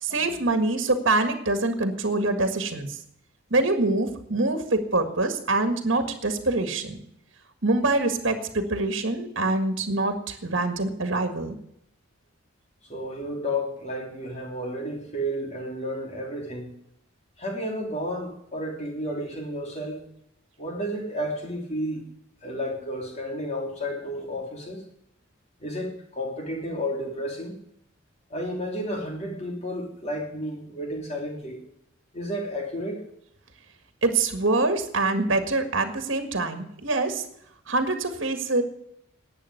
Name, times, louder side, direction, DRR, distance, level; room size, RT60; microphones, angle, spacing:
voice 1, 0.0-3.0 3.5-7.0 7.6-11.6 34.0-37.2 37.7-38.6, right 2 dB, 60° right, 8 dB, 1.8 m, -25 dB
voice 2, 12.9-16.7 17.4-20.1 20.6-22.0 22.4-24.8 25.6-27.5 28.3-31.6 32.1-33.1, equal, 30° left, 2 dB, 3.1 m, -32 dB
11.5 x 9.0 x 9.4 m, 0.74 s
head